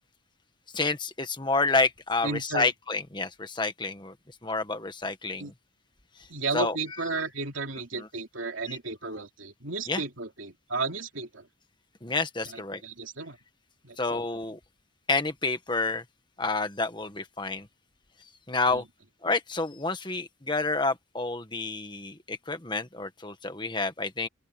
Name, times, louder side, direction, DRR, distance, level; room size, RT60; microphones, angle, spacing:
voice 1, 0.7-4.1 4.4-5.5 6.5-6.8 8.0-8.1 8.7-8.8 9.9-10.0 12.0-12.8 14.0-14.6 15.1-16.0 16.4-17.7 18.5-18.8 19.2-24.3, left 3 dB, 20° left, 1.6 m, -29 dB
voice 2, 2.2-2.7 5.4-5.5 6.3-11.5 12.4-13.4 13.8-14.2 18.7-18.8, right 3 dB, 70° right, 2.9 m, -34 dB
open air
head